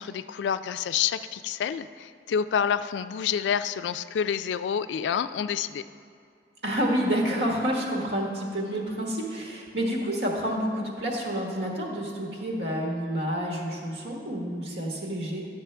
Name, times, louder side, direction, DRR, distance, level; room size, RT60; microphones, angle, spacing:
voice 1, 0.0-5.8, left 8 dB, 90° left, 13 dB, 0.3 m, -28 dB
voice 2, 6.6-15.5, equal, 70° right, -1 dB, 1.5 m, -29 dB
11.0 x 7.3 x 3.3 m, 2.3 s
head